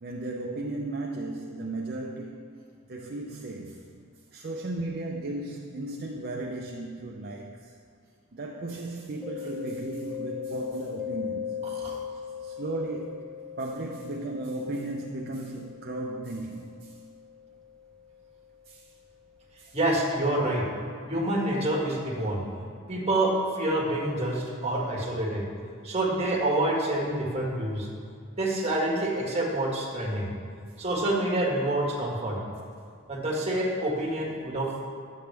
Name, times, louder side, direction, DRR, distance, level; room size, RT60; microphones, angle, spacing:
voice 1, 0.0-2.5 2.9-3.8 4.3-7.7 8.3-11.6 12.4-13.2 13.6-16.9 18.7-18.8 19.6-19.8, right 2 dB, 45° right, -1 dB, 0.6 m, -35 dB
Mallet percussion, 9.2-18.8, left 9 dB, 5° left, 0.5 m, -40 dB
voice 2, 11.6-12.0 19.7-20.6 21.1-22.4 22.9-25.4 25.8-27.9 28.4-30.3 30.8-32.4 33.1-34.8, right 1 dB, 30° right, -3 dB, 1.6 m, -27 dB
11.5 x 7.7 x 3.4 m, 2.3 s
head